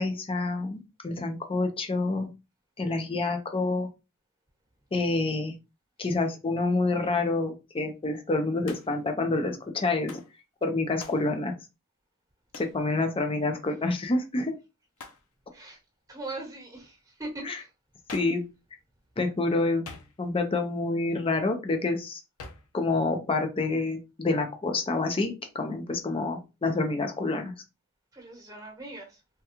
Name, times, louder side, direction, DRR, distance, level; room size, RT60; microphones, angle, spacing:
voice 1, 0.0-2.3 2.8-3.9 4.9-5.5 6.0-10.2 10.6-11.5 12.5-14.5 17.5-17.6 18.1-18.4 19.2-19.9 20.2-22.2 22.7-27.5, left 3 dB, 25° left, 0.5 m, -28 dB
Hands, 8.7-9.1 10.1-10.3 11.0-11.3 12.5-12.8 15.0-15.3 18.1-18.5 19.8-20.4 22.4-22.7, left 4 dB, 85° left, 0.6 m, -45 dB
voice 2, 16.1-17.7 28.1-29.2, right 2 dB, 15° right, 1.2 m, -40 dB
3.5 x 2.2 x 2.9 m
head